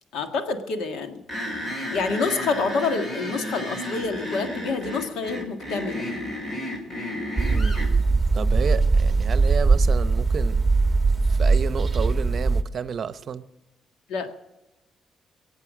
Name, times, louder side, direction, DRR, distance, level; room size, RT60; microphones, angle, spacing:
voice 1, 0.1-1.2 1.9-6.1 14.1-14.3, left 4 dB, 80° left, 1.7 m, -27 dB
sound 1, 1.3-7.9, left 1 dB, 35° left, 5.4 m, -32 dB
sound 2, 7.4-12.6, right 3 dB, 15° right, 1.6 m, -20 dB
voice 2, 7.5-7.8 8.3-10.6 11.3-13.4, right 7 dB, 50° right, 0.8 m, -31 dB
23.0 x 8.4 x 6.3 m
cardioid pair, 90°, 0 cm